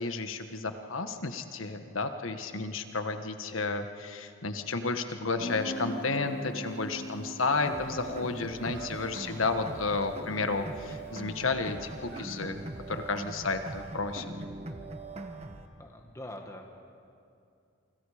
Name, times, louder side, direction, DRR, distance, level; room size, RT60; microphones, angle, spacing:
voice 1, 0.0-12.6 12.9-14.3, left 3 dB, 85° left, 8 dB, 1.4 m, -32 dB
Guitar, 5.4-11.0, right 1 dB, 65° left, 2.0 m, -42 dB
Conversation, 7.2-13.9, right 2 dB, 55° right, 4.7 m, -56 dB
sound 1, 7.7-15.7, right 2 dB, 30° right, 1.4 m, -41 dB
voice 2, 15.8-16.8, left 1 dB, 15° left, 3 dB, 1.6 m, -44 dB
28.5 x 25.5 x 5.0 m, 2.4 s
head